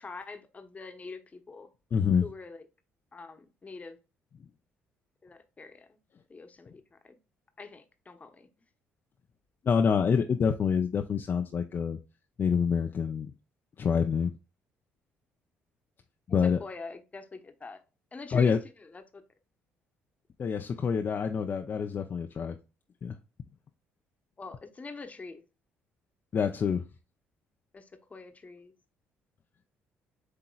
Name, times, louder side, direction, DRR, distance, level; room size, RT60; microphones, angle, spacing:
voice 1, 0.0-1.7 2.2-2.6 3.1-4.0 5.2-6.0 6.3-7.2 7.6-8.5 16.3-17.8 18.1-18.6 18.8-19.2 24.4-25.4 27.7-28.7, left 3 dB, 30° left, 1.0 m, -44 dB
voice 2, 1.9-2.3 9.6-12.0 12.4-13.3 13.8-14.3 16.3-16.6 18.3-18.6 20.4-22.6 23.0-23.2 26.3-26.8, left 6 dB, 45° left, 0.5 m, -26 dB
7.7 x 2.9 x 2.3 m
supercardioid pair, 65°, 5 cm